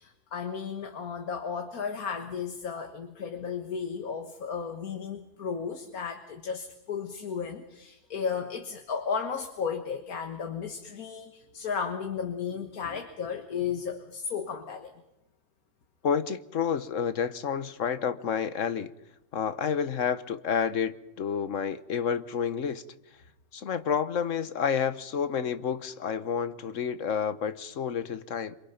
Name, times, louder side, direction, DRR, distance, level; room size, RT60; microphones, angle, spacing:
voice 1, 0.0-14.9, left 6 dB, 75° left, 2.0 m, -34 dB
voice 2, 16.0-18.9 19.3-22.8 23.5-28.6, left 7 dB, 60° left, 1.4 m, -29 dB
27.0 x 27.0 x 5.9 m
omnidirectional pair, 1.5 m